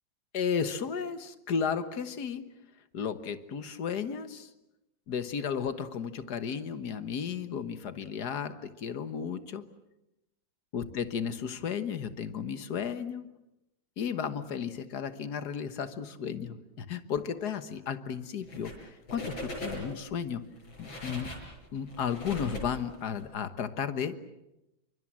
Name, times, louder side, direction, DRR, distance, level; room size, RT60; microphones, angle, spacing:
voice 1, 0.3-2.4 2.9-4.5 5.1-9.6 10.7-13.3 14.0-18.7 19.1-20.4 20.8-21.3 21.7-24.2, left 7 dB, 60° left, 11 dB, 1.8 m, -34 dB
sound 1, 18.4-18.8 19.1-20.0 20.6-23.2, left 1 dB, 85° left, 6.9 m, -40 dB
28.5 x 24.0 x 7.5 m, 0.92 s
omnidirectional pair, 2.1 m